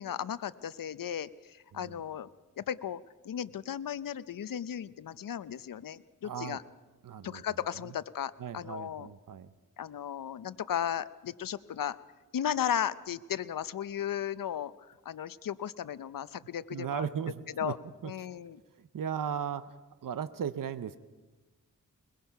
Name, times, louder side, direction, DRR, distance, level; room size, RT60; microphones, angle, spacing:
voice 1, 0.0-2.3 2.6-6.6 7.2-9.1 9.8-12.0 12.3-17.1 17.6-17.8 18.0-18.6, left 9 dB, 85° left, 15 dB, 0.6 m, -35 dB
voice 2, 6.2-6.6 7.0-7.4 8.4-9.5 16.7-17.7 18.0-18.1 18.8-19.8 20.0-21.0, right 8 dB, 80° right, 13 dB, 0.8 m, -36 dB
21.5 x 21.5 x 5.8 m, 1.2 s
wide cardioid pair, 70°, 32 cm